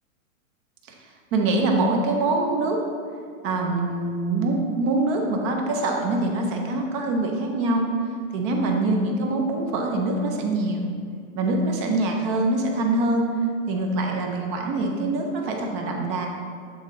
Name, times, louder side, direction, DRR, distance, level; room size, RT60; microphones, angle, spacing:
voice 1, 1.3-2.8 3.4-7.8 8.3-10.9 11.3-13.2 13.7-16.3, right 2 dB, 25° right, 2 dB, 0.4 m, -24 dB
8.5 x 3.7 x 3.7 m, 2.2 s
hypercardioid pair, 145°, 41 cm